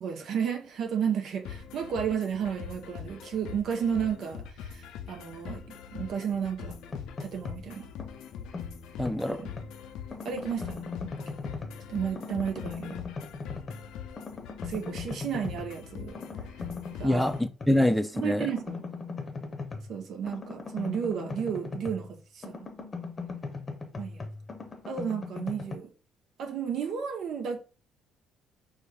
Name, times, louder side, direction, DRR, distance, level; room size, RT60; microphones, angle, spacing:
voice 1, 0.0-6.8 7.2-7.9 9.4-9.5 10.2-11.2 11.9-13.0 14.6-16.2 16.9-17.5 18.1-18.8 19.9-22.9 24.0-24.2 24.9-25.9 26.4-27.6, right 7 dB, 60° right, 0.5 m, -33 dB
sound 1, 1.4-17.4, left 8 dB, 70° left, 0.4 m, -43 dB
sound 2, 6.7-7.7 8.0-9.7 10.1-11.9 12.2-13.9 14.2-15.8 16.1-17.8 18.2-22.1 22.4-25.8, left 4 dB, 35° left, 0.7 m, -39 dB
voice 2, 9.0-9.5 17.0-18.5, left 1 dB, ahead, 0.4 m, -25 dB
4.2 x 2.1 x 3.4 m
hypercardioid pair, 50°, 0 cm